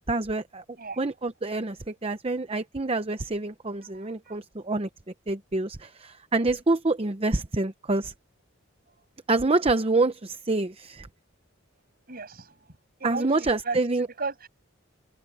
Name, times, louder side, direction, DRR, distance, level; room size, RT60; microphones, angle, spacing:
voice 1, 0.1-0.6 1.0-4.9 5.3-8.1 9.3-11.1 13.0-14.1, right 2 dB, 30° right, 0.7 m, -27 dB
voice 2, 3.9-4.4 12.1-12.5 13.0-14.5, right 4 dB, 45° right, 7.5 m, -36 dB
head